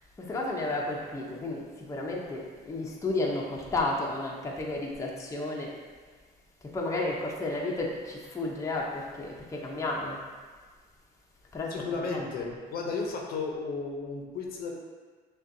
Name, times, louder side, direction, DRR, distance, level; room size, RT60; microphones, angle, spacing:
voice 1, 0.2-5.7 6.6-10.2 11.5-12.5, left 2 dB, 20° left, -2 dB, 0.6 m, -32 dB
voice 2, 11.7-14.7, left 4 dB, 65° left, 0 dB, 0.6 m, -34 dB
6.2 x 2.3 x 2.6 m, 1.5 s
cardioid pair, 110°, 17 cm